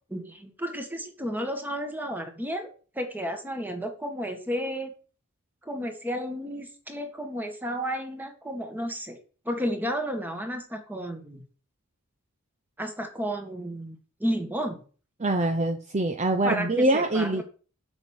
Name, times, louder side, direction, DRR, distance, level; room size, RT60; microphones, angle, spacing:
voice 1, 0.1-2.7 2.9-4.9 5.6-9.2 9.4-11.4 12.8-14.8 16.4-17.4, equal, 10° right, 5 dB, 1.7 m, -32 dB
voice 2, 15.2-17.4, right 2 dB, 30° right, 6 dB, 0.7 m, -24 dB
8.1 x 6.2 x 7.1 m, 0.40 s
head